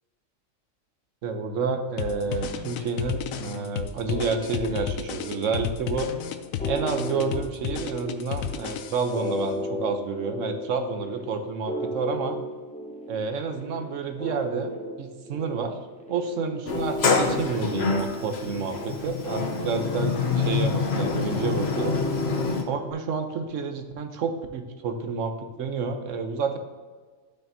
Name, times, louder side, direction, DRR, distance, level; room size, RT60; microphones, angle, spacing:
voice 1, 1.2-6.1 6.6-12.4 13.1-15.8 16.1-22.0 22.7-26.6, right 5 dB, 70° right, 7 dB, 1.1 m, -29 dB
sound 1, 2.0-9.3, left 9 dB, 80° left, 1.0 m, -33 dB
sound 2, 4.1-22.9, left 1 dB, 5° left, 0.6 m, -35 dB
Sliding door, 16.7-22.6, left 5 dB, 55° left, 1.0 m, -26 dB
12.0 x 5.8 x 2.7 m, 1.4 s
omnidirectional pair, 1.4 m